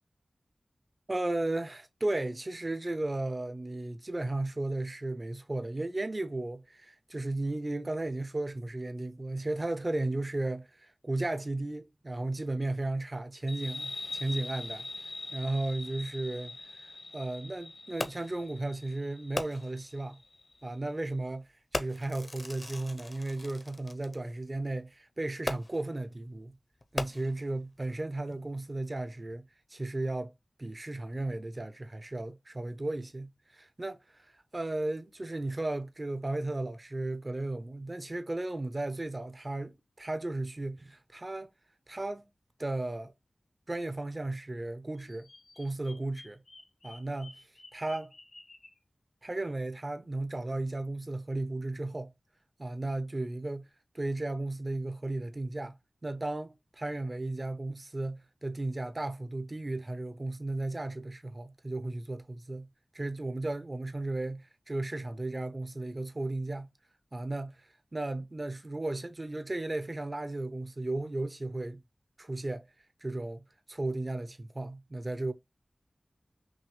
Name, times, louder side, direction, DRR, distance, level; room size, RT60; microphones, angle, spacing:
voice 1, 1.1-14.9 15.3-20.2 20.6-26.5 26.9-29.4 29.7-30.3 30.6-34.0 34.5-41.5 41.9-42.3 42.6-43.1 43.7-45.3 45.6-46.4 46.8-47.3 47.7-48.1 49.2-52.1 52.6-53.7 53.9-55.8 56.0-62.7 62.9-66.7 67.1-71.8 72.2-72.7 73.0-73.4 73.7-75.3, right 2 dB, 35° right, 0.6 m, -35 dB
sound 1, 13.5-20.7, left 2 dB, 65° left, 1.1 m, -43 dB
Fireworks, 18.0-18.4 19.3-19.9 20.7-20.9 21.7-24.2 25.4-26.0 26.8-27.6 28.3-28.4, left 2 dB, 40° left, 0.7 m, -38 dB
Bird vocalization bird call bird song, 45.0-48.8, left 2 dB, 80° left, 1.8 m, -53 dB
6.1 x 2.4 x 3.1 m
wide cardioid pair, 75°, 0 cm